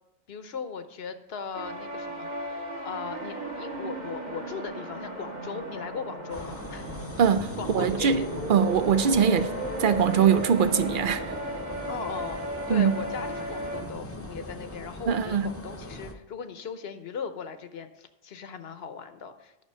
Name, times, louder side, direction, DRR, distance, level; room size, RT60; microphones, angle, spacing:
voice 1, 0.3-6.9 7.6-8.3 11.9-12.4 12.7-19.6, left 6 dB, 70° left, 1.1 m, -38 dB
sound 1, 1.5-13.8, right 1 dB, 40° right, 1.7 m, -35 dB
sound 2, 6.3-16.1, left 1 dB, 15° left, 0.7 m, -41 dB
voice 2, 7.2-8.2 8.5-9.5 9.8-11.2 12.7-12.9 15.1-15.5, right 7 dB, 60° right, 0.7 m, -22 dB
10.0 x 5.9 x 5.5 m
omnidirectional pair, 1.1 m